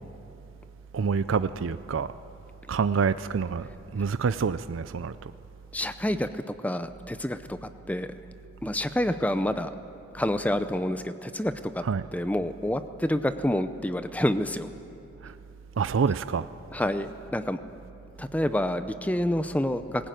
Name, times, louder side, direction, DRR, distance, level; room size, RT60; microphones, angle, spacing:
voice 1, 0.9-2.1 2.7-5.1 11.8-12.1 15.2-15.3 15.8-16.5, right 5 dB, 80° right, 0.4 m, -27 dB
voice 2, 5.7-8.1 8.6-9.7 10.1-11.8 12.1-14.7 16.7-17.6 18.2-20.1, left 1 dB, 10° left, 0.5 m, -28 dB
19.5 x 16.5 x 9.1 m
head